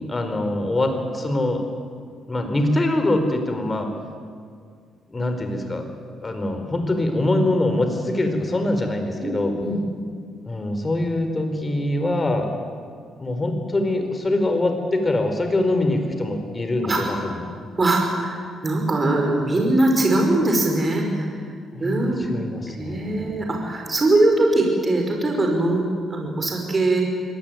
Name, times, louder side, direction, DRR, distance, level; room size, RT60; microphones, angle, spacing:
voice 1, 0.0-1.6 2.3-3.9 5.1-5.8 6.2-9.5 10.4-12.5 13.2-17.5 21.7-23.4, left 1 dB, 25° left, 6 dB, 4.5 m, -23 dB
voice 2, 9.2-9.8 16.8-17.0 17.8-21.3 21.8-22.3 22.8-27.0, right 2 dB, 30° right, 2 dB, 5.3 m, -21 dB
24.0 x 18.5 x 9.4 m, 2.1 s
cardioid pair, 90°, 0 cm